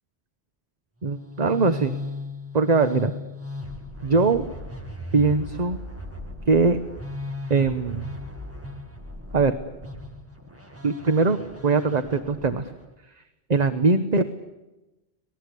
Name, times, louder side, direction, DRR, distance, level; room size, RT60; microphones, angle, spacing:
sound 1, 1.0-12.9, left 2 dB, 10° right, 2.0 m, -37 dB
voice 1, 1.0-2.0 2.5-3.1 4.0-4.5 5.1-5.8 6.5-6.8 7.5-8.1 9.3-9.5 10.8-12.6 13.5-14.2, right 4 dB, 40° right, 9 dB, 1.1 m, -21 dB
25.5 x 19.5 x 8.3 m, 1.0 s
omnidirectional pair, 1.1 m